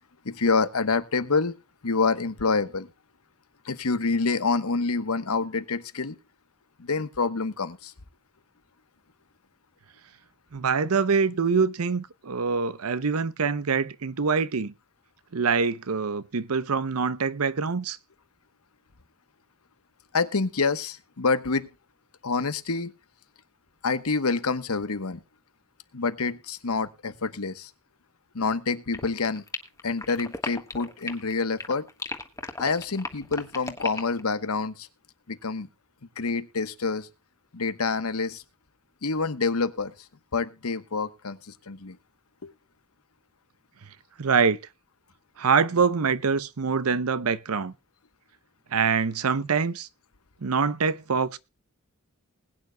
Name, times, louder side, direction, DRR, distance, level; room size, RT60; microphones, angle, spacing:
voice 1, 0.2-1.5 1.8-2.9 3.6-6.2 6.8-7.9 20.1-21.7 22.2-22.9 23.8-25.2 25.9-27.7 28.3-29.4 29.8-31.9 32.6-34.9 35.3-35.7 36.2-37.1 37.5-38.4 39.0-39.9 40.3-42.0 42.4-42.5, left 4 dB, 90° left, 1.1 m, -27 dB
voice 2, 10.5-14.7 15.3-18.0 43.8-43.9 44.2-44.6 45.4-47.7 48.7-49.9 50.4-51.4, right 5 dB, 85° right, 0.7 m, -25 dB
sound 1, 28.9-31.3 31.6-34.2, left 3 dB, 15° left, 1.4 m, -35 dB
20.5 x 9.3 x 2.3 m
head